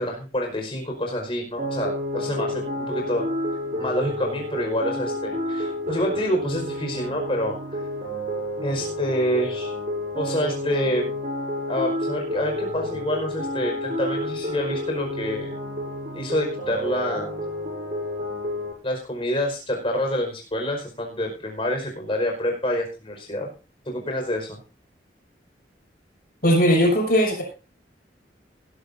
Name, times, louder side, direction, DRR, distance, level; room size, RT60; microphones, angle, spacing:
voice 1, 0.0-3.2 3.8-7.5 8.6-9.7 10.1-11.1 11.7-15.5 16.1-17.3 18.8-23.5 23.8-24.6, equal, 30° left, 1 dB, 5.0 m, -27 dB
sound 1, 1.6-18.7, left 1 dB, 40° right, 7.5 m, -30 dB
voice 2, 26.4-27.4, equal, 55° left, 0 dB, 6.8 m, -18 dB
20.0 x 12.5 x 2.7 m, 0.32 s
head